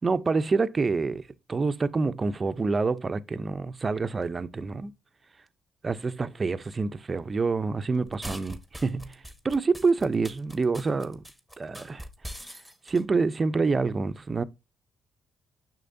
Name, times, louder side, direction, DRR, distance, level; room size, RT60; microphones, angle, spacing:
voice 1, 0.0-4.9 5.8-9.2 9.4-11.2 11.6-12.0 12.9-14.4, right 4 dB, 30° right, 0.5 m, -27 dB
sound 1, 8.1-13.0, equal, 5° left, 1.1 m, -42 dB
6.6 x 6.3 x 2.6 m
cardioid pair, 90°, 0 cm